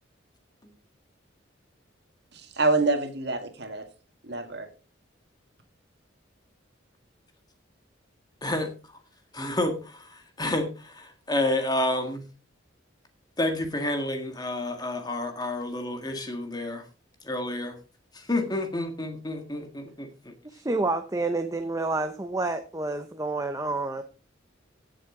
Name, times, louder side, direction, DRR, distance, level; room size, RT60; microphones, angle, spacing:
voice 1, 2.3-3.8 4.2-4.7, right 3 dB, 55° right, 6 dB, 2.1 m, -26 dB
voice 2, 8.4-8.7 9.3-12.3 13.4-16.8 17.2-17.8 18.1-20.3, left 1 dB, 20° left, 5 dB, 1.7 m, -29 dB
voice 3, 20.4-24.0, right 2 dB, 15° right, 7 dB, 0.7 m, -29 dB
16.0 x 7.6 x 3.7 m, 0.32 s
head